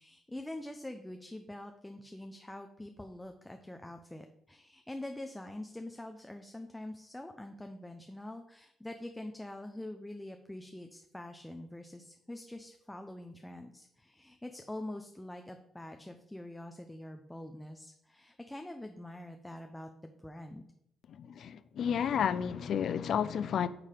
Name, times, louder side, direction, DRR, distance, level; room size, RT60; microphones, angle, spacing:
voice 1, 0.0-20.7, left 1 dB, 10° left, 0.6 m, -45 dB
voice 2, 21.1-23.7, left 8 dB, 55° left, 0.3 m, -31 dB
9.4 x 3.2 x 3.8 m
figure-of-eight pair, 45°, 0 cm